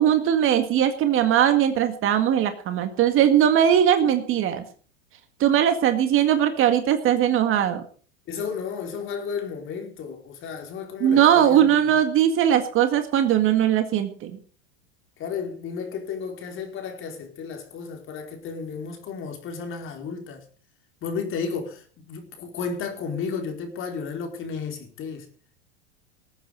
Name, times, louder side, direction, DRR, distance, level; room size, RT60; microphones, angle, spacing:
voice 1, 0.0-4.6 5.4-7.8 11.0-14.3, right 10 dB, 40° right, 1.9 m, -20 dB
voice 2, 8.3-12.0 15.2-20.4 21.0-25.3, left 5 dB, 35° left, 4.6 m, -33 dB
19.5 x 9.1 x 5.3 m
hypercardioid pair, 105°, 34 cm